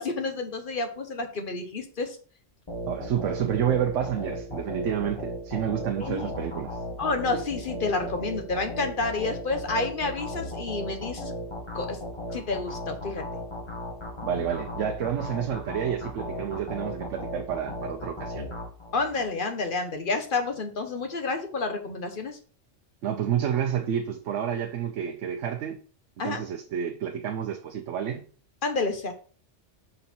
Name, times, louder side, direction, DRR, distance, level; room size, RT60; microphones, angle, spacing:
voice 1, 0.0-2.2 6.0-6.3 7.0-11.3 11.7-12.0 12.3-13.2 18.9-22.4 26.2-26.4 28.6-29.1, left 3 dB, 45° left, 1.2 m, -29 dB
sound 1, 2.7-19.3, left 1 dB, 25° left, 1.5 m, -36 dB
voice 2, 2.9-6.8 14.2-18.5 23.0-25.8 26.2-28.2, right 9 dB, 85° right, 1.0 m, -29 dB
5.5 x 5.4 x 4.3 m
omnidirectional pair, 1.2 m